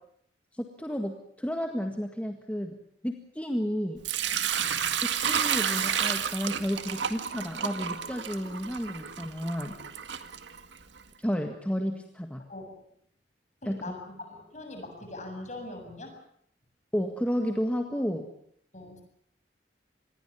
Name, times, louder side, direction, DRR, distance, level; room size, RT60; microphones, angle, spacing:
voice 1, 0.5-2.8 3.0-4.0 5.3-9.8 11.2-12.4 13.6-13.8 16.9-18.3, equal, 10° left, 4 dB, 1.7 m, -32 dB
Sink (filling or washing) / Liquid, 4.0-11.0, right 8 dB, 85° right, 2.0 m, -31 dB
voice 2, 4.6-5.0 12.5-12.7 13.6-16.1 18.7-19.0, left 2 dB, 40° left, 5 dB, 7.4 m, -42 dB
27.0 x 21.5 x 7.1 m, 0.68 s
head